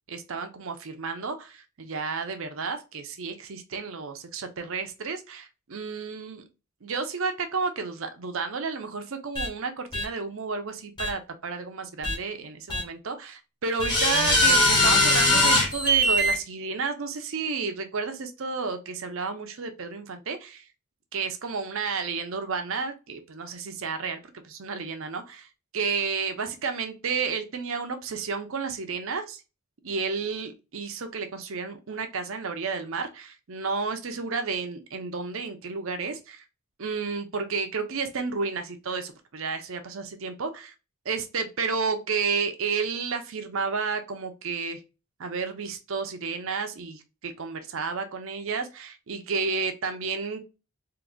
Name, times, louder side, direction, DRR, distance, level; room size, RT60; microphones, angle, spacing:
voice 1, 0.1-6.4 6.8-20.6 21.1-25.5 25.7-29.4 29.8-36.4 36.8-40.7 41.0-44.8 45.2-50.5, right 4 dB, 65° right, 7 dB, 0.6 m, -31 dB
sound 1, 9.3-9.5 9.9-10.0 11.0-11.1 12.0-12.1 12.7-12.8 13.8-16.3, left 1 dB, 20° left, 0.9 m, -21 dB
3.8 x 2.6 x 2.3 m, 0.30 s
head